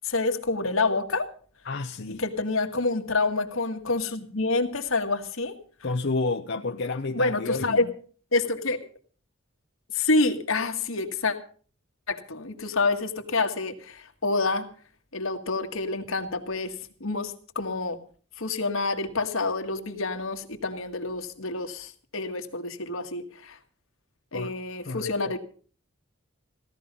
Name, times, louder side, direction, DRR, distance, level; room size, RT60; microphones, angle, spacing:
voice 1, 0.0-1.3 2.2-5.6 7.1-7.9 8.3-8.9 9.9-11.4 12.1-14.7 15.1-18.0 18.4-23.6 24.3-25.4, left 3 dB, 75° left, 1.9 m, -27 dB
voice 2, 1.6-2.2 5.8-7.9 24.3-24.5 24.8-25.3, left 3 dB, 55° left, 0.7 m, -30 dB
17.0 x 13.0 x 5.3 m
head